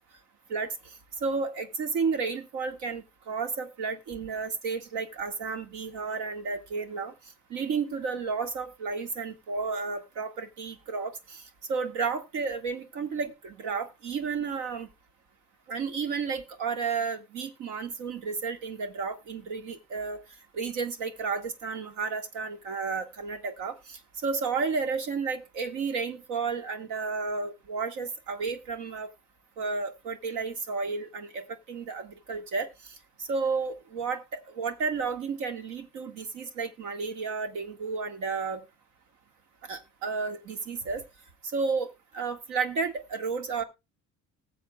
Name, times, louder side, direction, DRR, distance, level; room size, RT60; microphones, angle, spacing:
voice 1, 0.5-0.9 1.2-7.1 7.5-14.9 15.7-20.2 20.5-29.1 29.6-38.6 39.7-41.0 41.4-41.9 42.1-43.6, right 5 dB, 65° right, 7 dB, 1.9 m, -32 dB
20.0 x 7.5 x 2.3 m, 0.24 s
cardioid pair, 170°, 32 cm